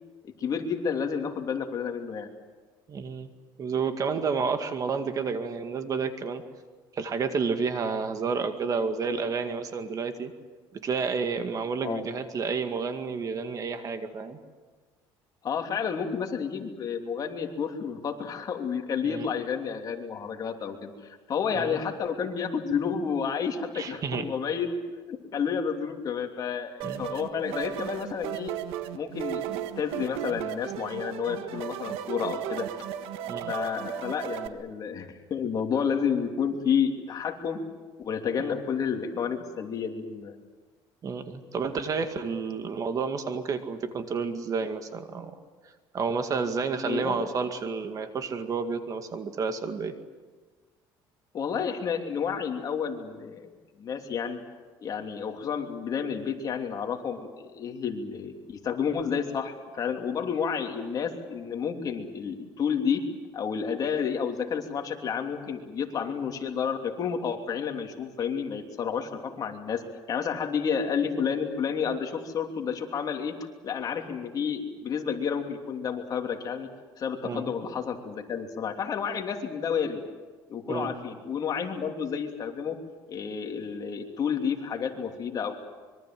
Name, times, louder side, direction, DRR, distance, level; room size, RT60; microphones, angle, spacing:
voice 1, 0.2-2.3 11.8-12.0 15.4-24.7 25.1-28.5 28.9-32.7 33.5-37.6 38.0-40.3 46.8-47.1 51.3-53.5 53.8-54.4 54.8-63.0 63.3-69.8 70.1-73.3 73.6-76.7 77.0-80.0 80.5-82.8 83.1-85.5, left 7 dB, 45° left, 3 dB, 3.0 m, -30 dB
voice 2, 2.9-3.3 3.6-6.4 6.9-10.3 10.7-14.4 19.0-19.3 21.5-21.8 23.7-24.3 26.8-27.1 33.3-33.5 41.0-45.3 45.9-50.0 77.2-77.5 80.7-80.9, right 5 dB, 40° right, 7 dB, 2.1 m, -30 dB
sound 1, 26.8-34.5, right 11 dB, 85° right, 1.5 m, -35 dB
25.5 x 23.0 x 7.8 m, 1.3 s
cardioid pair, 125°, 9 cm